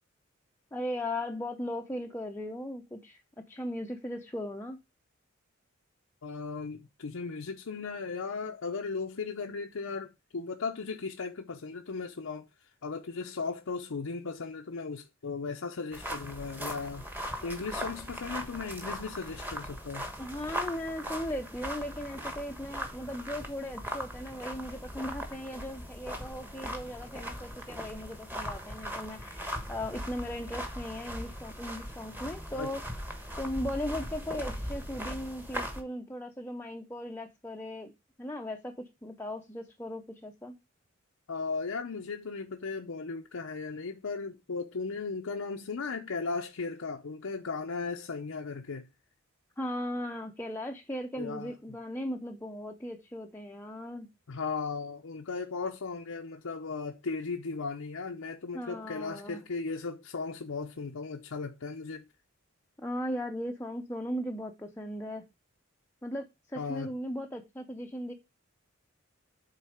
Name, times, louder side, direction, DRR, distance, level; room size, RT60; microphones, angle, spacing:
voice 1, 0.7-4.8 20.2-32.8 33.4-37.9 38.2-40.6 49.6-54.1 58.5-59.4 62.8-65.3 66.0-68.1, left 1 dB, 10° left, 0.6 m, -37 dB
voice 2, 6.2-17.1 17.4-20.1 32.5-32.7 41.3-48.9 51.2-51.5 54.3-62.0 66.6-66.9, left 4 dB, 80° left, 0.7 m, -36 dB
sound 1, 15.9-35.8, equal, 10° right, 1.3 m, -39 dB
8.4 x 3.9 x 5.0 m
head